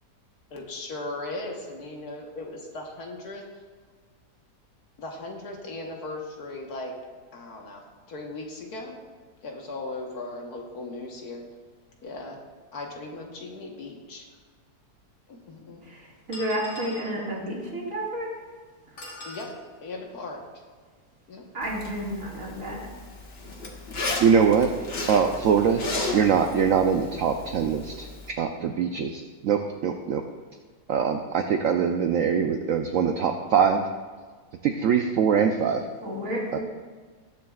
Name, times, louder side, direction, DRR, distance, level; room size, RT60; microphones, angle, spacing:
voice 1, 0.5-3.4 5.0-6.9 7.3-9.0 9.4-11.4 12.0-12.4 12.7-14.2 15.3-15.8 19.2-19.5 19.8-20.4 21.3-21.4, left 2 dB, 65° left, 0 dB, 1.7 m, -37 dB
sound 1, 14.3-14.4 15.3-15.4 16.3-17.2 19.0-19.5, left 1 dB, 85° left, 3.0 m, -40 dB
voice 2, 15.8-18.3 21.5-22.9 36.0-36.6, equal, 50° right, -4 dB, 2.6 m, -31 dB
Zipper (clothing), 21.6-28.3, left 2 dB, 40° left, 1.3 m, -35 dB
voice 3, 24.2-25.8 26.1-28.1 28.4-30.2 30.9-33.8 34.6-35.8 36.5-36.6, right 7 dB, 65° right, 4 dB, 0.8 m, -23 dB
19.5 x 7.1 x 2.4 m, 1.5 s
omnidirectional pair, 1.8 m